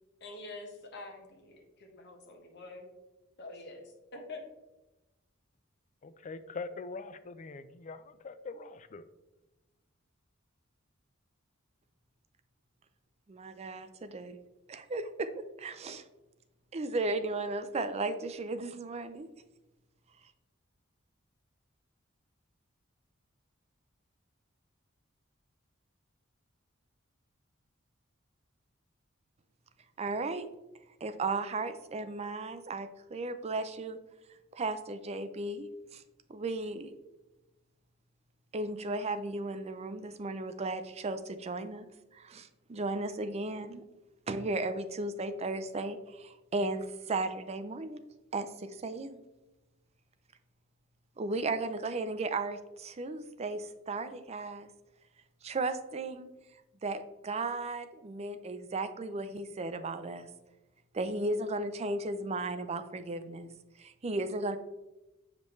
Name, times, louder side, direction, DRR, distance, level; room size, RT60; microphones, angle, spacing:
voice 1, 0.2-2.9 3.4-3.8 4.1-4.4, left 2 dB, 55° left, 2 dB, 1.3 m, -46 dB
voice 2, 6.0-9.0, left 4 dB, 35° left, 12 dB, 0.4 m, -43 dB
voice 3, 13.3-14.4 14.7-16.0 16.7-19.3 30.0-30.5 31.0-34.0 34.5-36.0 36.3-37.0 38.5-43.8 44.3-48.0 48.3-49.2 51.2-54.7 55.4-56.3 56.8-60.3 60.9-63.5 63.8-64.6, right 2 dB, 30° right, 10 dB, 0.4 m, -35 dB
6.9 x 5.1 x 3.1 m, 1.0 s
head